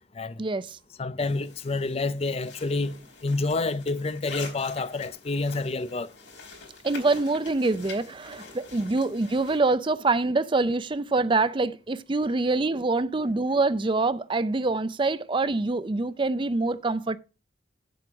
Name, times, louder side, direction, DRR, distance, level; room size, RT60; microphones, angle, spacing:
voice 1, 0.4-0.8 6.8-17.2, right 3 dB, 25° right, 0.5 m, -25 dB
voice 2, 1.0-3.0 3.2-6.1, left 3 dB, 35° left, 0.5 m, -28 dB
sound 1, 1.2-9.6, left 4 dB, 80° left, 4.1 m, -45 dB
7.9 x 7.8 x 5.8 m
head